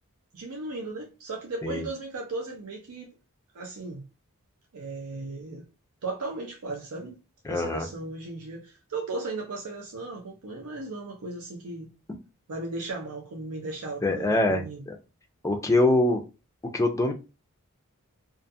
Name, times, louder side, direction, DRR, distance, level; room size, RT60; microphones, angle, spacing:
voice 1, 0.3-3.1 3.5-4.0 4.7-5.6 6.0-7.2 7.5-11.9 12.5-14.8, right 3 dB, 80° right, 0.6 m, -36 dB
voice 2, 7.5-7.9 14.0-15.0 15.4-16.2 16.7-17.1, left 2 dB, 15° left, 0.4 m, -24 dB
2.4 x 2.3 x 2.6 m
head